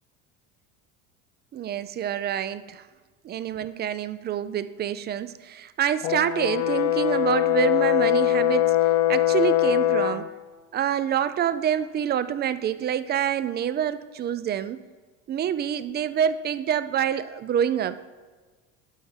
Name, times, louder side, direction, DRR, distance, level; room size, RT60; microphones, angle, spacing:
voice 1, 1.5-2.9 3.2-10.3 10.7-14.8 15.3-18.0, right 9 dB, 30° right, 15 dB, 0.4 m, -27 dB
Brass instrument, 6.0-10.3, left 13 dB, 55° left, 0.6 m, -22 dB
12.0 x 4.5 x 5.7 m, 1.4 s
supercardioid pair, 105°, 35 cm